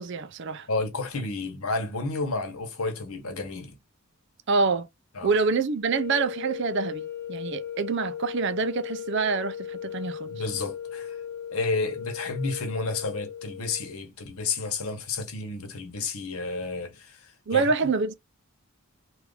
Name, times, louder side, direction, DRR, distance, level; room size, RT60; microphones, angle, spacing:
voice 1, 0.0-0.7 4.5-4.9 5.2-10.3 17.5-18.1, right 4 dB, 55° right, 0.4 m, -26 dB
voice 2, 0.7-3.8 5.1-5.3 10.3-11.2 11.5-17.7, left 3 dB, 75° left, 1.1 m, -31 dB
sound 1, 5.8-14.0, left 9 dB, 15° left, 0.9 m, -37 dB
3.1 x 2.5 x 3.2 m
head